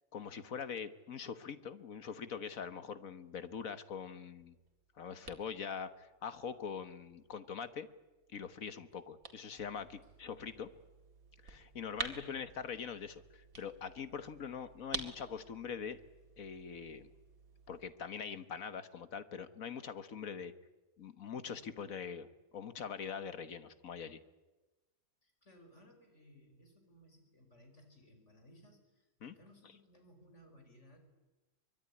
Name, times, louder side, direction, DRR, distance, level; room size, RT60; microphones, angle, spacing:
voice 1, 0.1-4.6 5.0-7.9 8.3-10.7 11.4-16.0 16.4-17.1 17.7-20.5 21.0-22.3 22.5-24.2 29.2-29.3, left 6 dB, 70° left, 12 dB, 1.6 m, -43 dB
sound 1, 4.4-17.9, right 5 dB, 70° right, 2.5 m, -50 dB
voice 2, 12.0-12.4 25.2-31.1, equal, 50° left, 6 dB, 5.2 m, -61 dB
24.5 x 23.0 x 9.8 m, 1.1 s
omnidirectional pair, 1.5 m